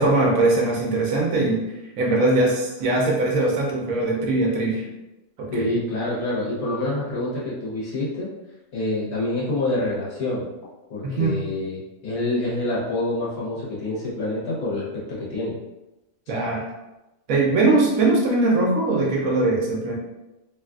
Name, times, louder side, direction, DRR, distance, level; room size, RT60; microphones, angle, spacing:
voice 1, 0.0-1.6 2.0-4.9 5.4-5.7 11.0-11.4 16.3-16.6 17.3-20.0, right 2 dB, 70° right, -2 dB, 1.0 m, -21 dB
voice 2, 5.5-8.3 8.7-10.5 10.9-15.5, left 2 dB, 80° left, -6 dB, 1.5 m, -27 dB
3.2 x 2.4 x 2.3 m, 0.98 s
omnidirectional pair, 1.5 m